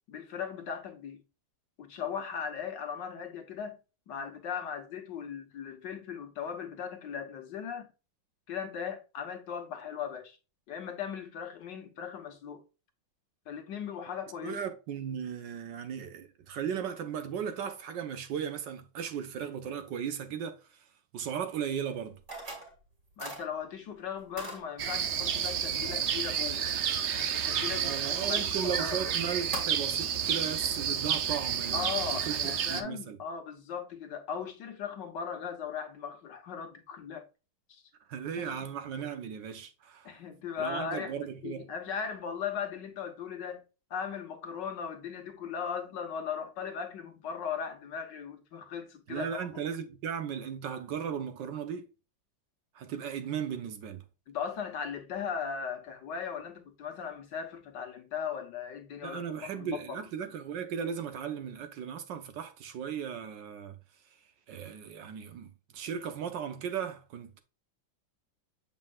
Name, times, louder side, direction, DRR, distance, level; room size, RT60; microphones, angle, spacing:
voice 1, 0.1-1.2 1.8-3.8 4.1-7.9 8.5-10.4 10.7-12.6 13.5-14.6 23.2-26.7 27.1-29.0 31.7-37.2 37.7-37.8 38.4-38.7 40.0-49.5 54.3-60.0, left 7 dB, 65° left, 1.7 m, -38 dB
voice 2, 14.4-20.6 21.1-22.2 27.7-33.2 38.1-40.1 40.6-41.7 49.1-51.8 52.7-54.0 59.0-63.7 64.5-67.4, right 8 dB, 70° right, 1.4 m, -36 dB
sound 1, 22.3-22.7 23.2-23.4 24.4-24.6 28.5-28.6 29.1-29.2 29.5-29.7, equal, 45° right, 3.4 m, -39 dB
sound 2, 24.8-32.8, right 8 dB, 85° right, 0.6 m, -30 dB
7.4 x 5.5 x 2.3 m
omnidirectional pair, 2.1 m